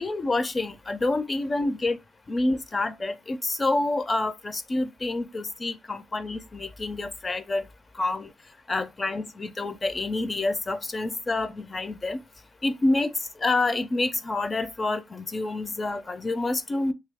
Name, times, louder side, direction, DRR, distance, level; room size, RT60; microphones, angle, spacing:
voice 1, 0.0-2.0 2.3-7.7 7.9-8.3 8.7-12.2 12.6-13.1 13.4-16.9, left 2 dB, 30° left, 0.4 m, -28 dB
2.6 x 2.3 x 3.3 m
cardioid pair, 90°, 0 cm